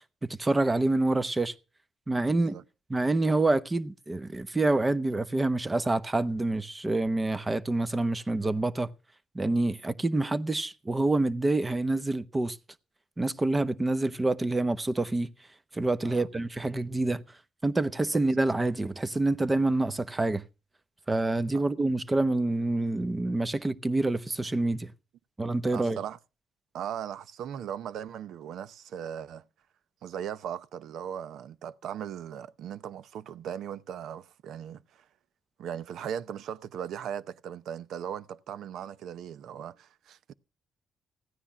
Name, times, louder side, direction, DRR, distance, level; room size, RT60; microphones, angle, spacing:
voice 1, 0.2-1.5 2.1-2.5 2.9-8.9 9.3-12.6 13.2-15.3 15.7-17.2 17.6-20.4 21.1-24.9 25.4-26.0, right 2 dB, 20° right, 0.9 m, -27 dB
voice 2, 2.3-2.6 16.0-16.3 21.5-21.6 25.7-26.2 26.7-29.4 30.0-35.0 35.6-40.3, right 9 dB, 75° right, 0.7 m, -38 dB
15.0 x 9.8 x 5.7 m
cardioid pair, 90°, 0 cm